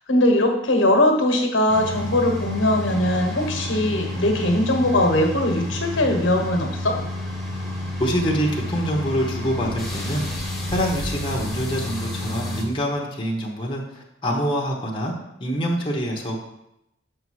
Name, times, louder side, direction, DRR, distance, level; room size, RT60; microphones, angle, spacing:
voice 1, 0.1-7.0, left 1 dB, 75° left, 3 dB, 1.3 m, -20 dB
sound 1, 1.7-12.6, left 1 dB, ahead, 1.2 m, -30 dB
voice 2, 8.0-10.3 10.7-15.1 15.4-16.4, equal, 25° left, -2 dB, 1.0 m, -25 dB
6.7 x 5.5 x 4.8 m, 0.84 s
head